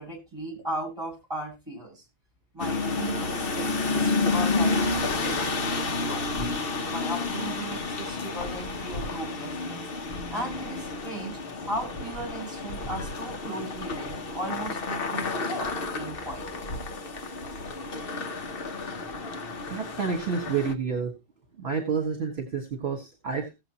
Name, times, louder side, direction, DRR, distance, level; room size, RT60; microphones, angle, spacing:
voice 1, 0.0-2.0 2.5-6.3 6.9-9.8 10.3-11.4 11.7-16.5, right 1 dB, 20° right, -1 dB, 6.3 m, -36 dB
sound 1, 2.6-20.7, left 3 dB, 50° left, 1.1 m, -30 dB
voice 2, 19.7-21.1 21.6-23.5, right 6 dB, 50° right, 2 dB, 1.8 m, -29 dB
17.5 x 7.4 x 3.0 m, 0.26 s
omnidirectional pair, 1.3 m